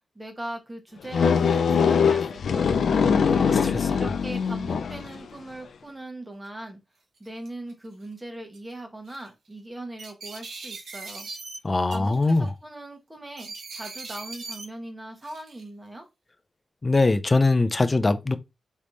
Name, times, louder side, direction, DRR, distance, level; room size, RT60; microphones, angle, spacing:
voice 1, 0.1-3.1 3.9-6.8 7.2-11.3 11.9-16.0, right 1 dB, 15° right, 1.3 m, -40 dB
sound 1, 1.1-5.2, left 6 dB, 80° left, 0.5 m, -22 dB
voice 2, 3.3-3.9 11.6-12.4 16.8-18.4, left 3 dB, 25° left, 0.5 m, -22 dB
sound 2, 6.4-6.5 7.2-7.7 8.5-8.7 9.1-9.3 10.0-11.6 11.9-12.5 13.4-14.7 15.2-15.7, right 3 dB, 85° right, 1.2 m, -40 dB
3.5 x 3.1 x 4.0 m
wide cardioid pair, 120°, 0 cm